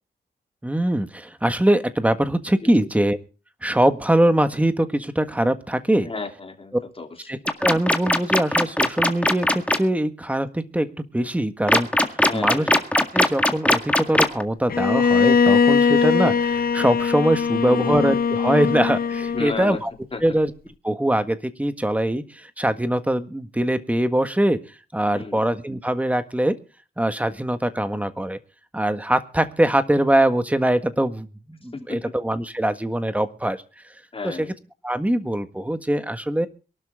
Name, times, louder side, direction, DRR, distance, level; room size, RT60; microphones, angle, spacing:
voice 1, 0.6-3.2 3.6-6.1 7.3-10.9 11.1-12.7 12.9-19.9 20.2-20.5 20.8-24.6 24.9-26.5 27.0-28.4 28.7-33.6 34.2-34.5 34.8-36.5, right 1 dB, 10° right, 10 dB, 1.6 m, -22 dB
voice 2, 6.0-7.3 12.2-12.7 17.5-18.0 19.3-19.8 20.1-20.3 25.1-25.4 31.7-32.0 34.1-34.5, left 3 dB, 30° left, 4 dB, 3.2 m, -33 dB
sound 1, 7.5-9.8 11.7-14.4, left 1 dB, 5° left, 2.0 m, -18 dB
Bowed string instrument, 14.7-19.7, left 6 dB, 60° left, 0.7 m, -20 dB
23.0 x 12.0 x 3.6 m, 0.35 s
wide cardioid pair, 110°, 18 cm